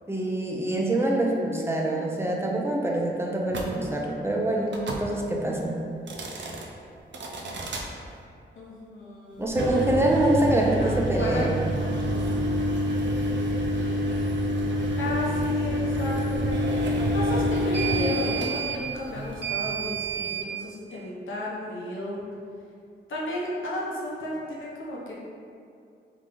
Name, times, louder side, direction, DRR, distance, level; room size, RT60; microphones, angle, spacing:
voice 1, 0.1-5.8 9.4-11.6, right 1 dB, 10° right, -1 dB, 0.6 m, -25 dB
sound 1, 3.5-3.7 4.7-5.1 6.0-6.7 7.1-7.9 9.4-20.5, right 1 dB, 70° right, 0.6 m, -27 dB
voice 2, 8.5-9.5 10.5-11.5 13.7-14.2 15.0-22.2 23.1-25.1, left 1 dB, 85° left, -5 dB, 1.0 m, -33 dB
3.9 x 3.2 x 3.8 m, 2.4 s
cardioid pair, 80°, 20 cm